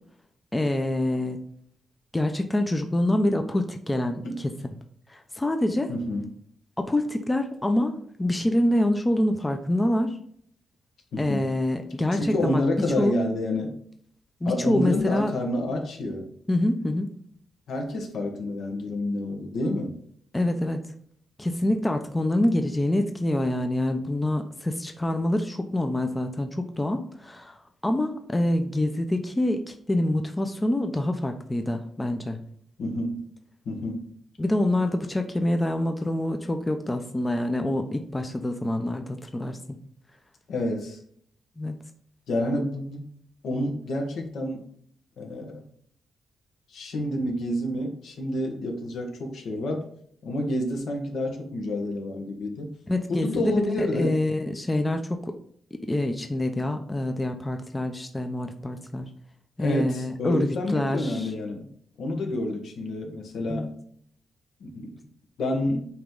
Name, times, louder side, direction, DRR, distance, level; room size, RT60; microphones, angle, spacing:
voice 1, 0.5-1.4 2.1-4.5 5.1-5.9 6.8-10.2 11.2-12.6 13.0-13.1 14.4-15.3 16.5-17.1 20.3-20.8 21.4-32.4 34.4-39.6 41.6-41.7 52.9-55.3 55.7-59.1 59.6-61.3 63.5-63.7, left 1 dB, 15° left, 6 dB, 0.5 m, -26 dB
voice 2, 5.9-6.3 11.1-11.5 12.1-13.7 14.4-16.3 17.7-19.9 32.8-33.2 33.6-34.1 40.5-41.0 42.3-43.0 43.4-44.6 45.2-45.7 46.7-49.9 50.2-52.7 53.1-54.2 59.6-61.7 62.0-63.7 64.6-65.0 65.4-65.9, left 1 dB, 75° left, 3 dB, 1.3 m, -28 dB
8.5 x 3.0 x 3.8 m, 0.63 s
wide cardioid pair, 140°, 0 cm